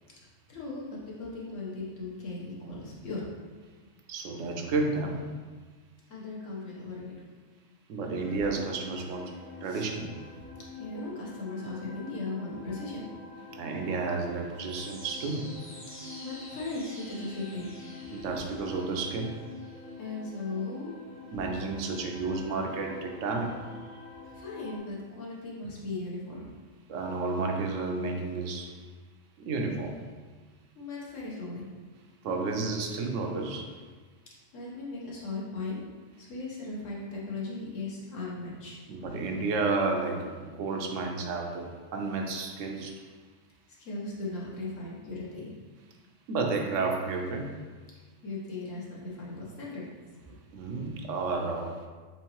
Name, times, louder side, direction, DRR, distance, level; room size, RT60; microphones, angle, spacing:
voice 1, 0.5-3.3 6.1-7.1 9.7-9.9 10.7-13.1 15.9-17.7 20.0-21.0 24.2-26.5 30.7-31.6 34.5-35.8 36.2-38.8 43.7-45.5 48.2-49.9 50.3-50.4, left 3 dB, 90° left, -4 dB, 1.4 m, -37 dB
voice 2, 4.1-5.3 7.9-10.1 13.5-15.5 18.1-19.4 21.3-23.7 26.9-28.7 29.4-30.0 32.2-33.7 38.9-43.0 46.3-47.5 50.5-51.8, right 3 dB, 80° right, 2 dB, 1.0 m, -31 dB
sound 1, 8.1-24.8, left 3 dB, 15° left, 0.5 m, -46 dB
4.4 x 3.7 x 2.9 m, 1.4 s
omnidirectional pair, 1.3 m